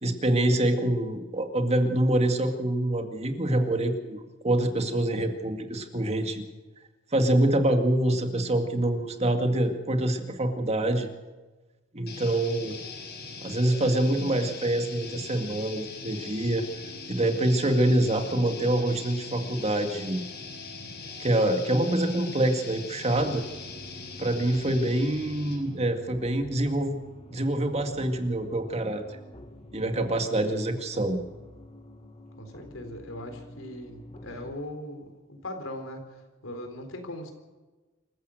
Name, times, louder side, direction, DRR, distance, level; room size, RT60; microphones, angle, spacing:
voice 1, 0.0-6.4 7.1-11.1 11.9-12.8 13.4-16.7 17.1-20.2 21.2-23.4 24.2-27.0 27.3-29.0 29.7-31.2, right 1 dB, 30° right, 5 dB, 2.1 m, -25 dB
sound 1, 12.1-25.8, left 4 dB, 55° left, 5.8 m, -41 dB
sound 2, 23.1-34.5, equal, 30° left, 1.6 m, -48 dB
voice 2, 32.4-37.3, left 1 dB, 80° left, 6 dB, 3.9 m, -40 dB
26.5 x 15.5 x 6.5 m, 1.2 s
head